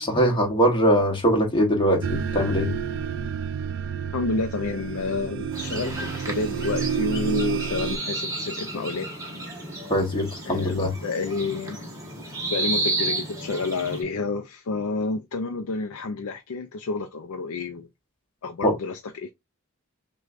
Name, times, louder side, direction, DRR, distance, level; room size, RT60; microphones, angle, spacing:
voice 1, 0.0-2.7 9.9-10.9 18.6-18.7, equal, 25° left, 1.1 m, -22 dB
sound 1, 2.0-8.0, right 6 dB, 60° right, 0.4 m, -29 dB
voice 2, 4.1-9.1 10.5-11.8 12.5-17.9 18.4-19.3, left 3 dB, 85° left, 0.5 m, -29 dB
sound 2, 5.5-14.0, right 2 dB, 15° right, 1.3 m, -32 dB
6.2 x 2.3 x 2.4 m
head